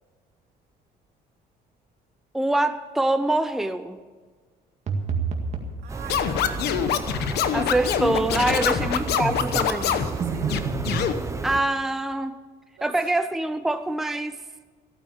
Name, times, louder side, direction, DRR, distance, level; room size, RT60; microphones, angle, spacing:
voice 1, 2.3-4.0 7.5-10.0 11.4-12.3 12.8-14.4, right 2 dB, ahead, 9 dB, 0.6 m, -25 dB
sound 1, 4.9-5.8 10.2-11.1, right 5 dB, 40° right, 2.0 m, -28 dB
voice 2, 5.8-7.1 8.5-9.4 9.7-10.7 12.7-13.1, right 6 dB, 75° right, 1 dB, 3.3 m, -42 dB
sound 2, 5.9-11.6, right 3 dB, 15° right, 1.0 m, -33 dB
Scratching (performance technique), 6.1-10.1 10.5-11.1, left 9 dB, 75° left, 1.1 m, -25 dB
15.5 x 8.8 x 7.0 m, 1.5 s
cardioid pair, 110°, 17 cm